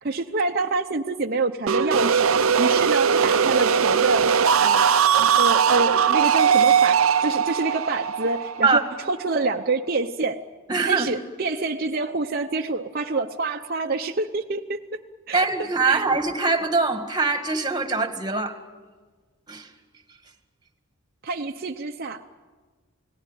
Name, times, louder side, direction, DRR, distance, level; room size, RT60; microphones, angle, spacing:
voice 1, 0.0-10.4 10.8-14.8 15.3-15.4 15.8-16.0 21.2-22.3, right 3 dB, 45° right, 2 dB, 0.8 m, -27 dB
sound 1, 1.7-9.4, right 7 dB, 80° right, 0.7 m, -20 dB
voice 2, 10.7-11.1 15.3-18.6 19.5-19.7, right 4 dB, 20° right, 7 dB, 1.9 m, -23 dB
29.5 x 18.0 x 9.1 m, 1.4 s
head